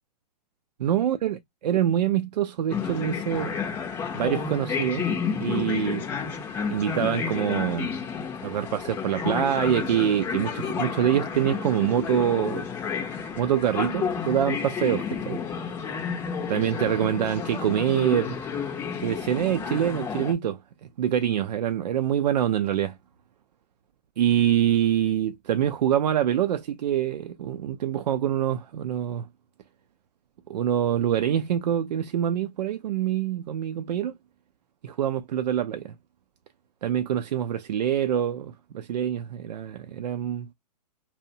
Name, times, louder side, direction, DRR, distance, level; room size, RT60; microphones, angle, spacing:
voice 1, 0.8-3.6 4.1-5.1 5.4-6.1 6.7-8.0 8.4-12.7 13.4-15.5 16.5-18.4 19.0-20.6 21.0-23.0 24.2-29.3 30.5-34.1 34.8-35.9 36.8-40.5, right 10 dB, 75° right, 0.4 m, -25 dB
sound 1, 2.7-20.3, left 6 dB, 10° left, 0.4 m, -31 dB
2.7 x 2.0 x 2.7 m
hypercardioid pair, 150°, 21 cm